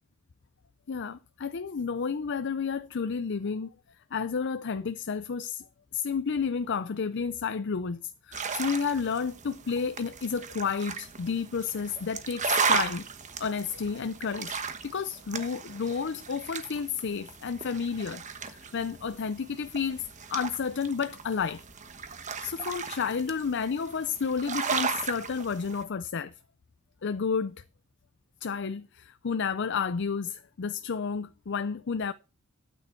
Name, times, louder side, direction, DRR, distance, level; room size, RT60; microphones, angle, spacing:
voice 1, 0.9-3.7 4.1-5.7 5.9-13.1 13.4-20.0 20.3-21.6 22.4-26.3 27.0-27.6 28.4-32.1, left 6 dB, 60° left, 0.5 m, -31 dB
sound 1, 8.3-25.8, right 5 dB, 35° right, 1.2 m, -35 dB
13.0 x 9.1 x 4.5 m
head